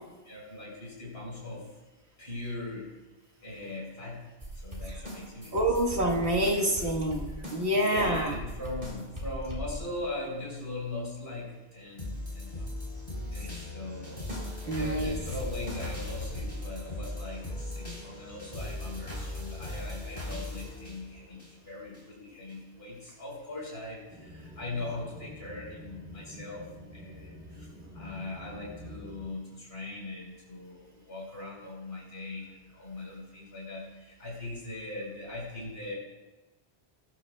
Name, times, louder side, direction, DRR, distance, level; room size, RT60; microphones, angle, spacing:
voice 1, 0.2-1.7 2.2-2.9 3.4-4.2 4.5-5.6 6.4-6.9 7.7-12.7 13.3-14.2 14.7-26.7 26.9-27.7 27.9-36.0, left 2 dB, 65° left, -3 dB, 5.0 m, -40 dB
sound 1, 4.4-10.0 14.3-14.6 15.0-16.4, equal, 40° right, 3.7 m, -40 dB
voice 2, 5.5-8.3 13.4-13.5 14.6-15.2, right 1 dB, 85° right, -1 dB, 1.9 m, -27 dB
sound 2, 12.0-22.0 22.5-22.6, left 2 dB, 40° left, 4.1 m, -38 dB
sound 3, 24.1-29.3, equal, 65° right, 2.1 m, -47 dB
21.5 x 11.5 x 2.3 m, 1.1 s
omnidirectional pair, 1.1 m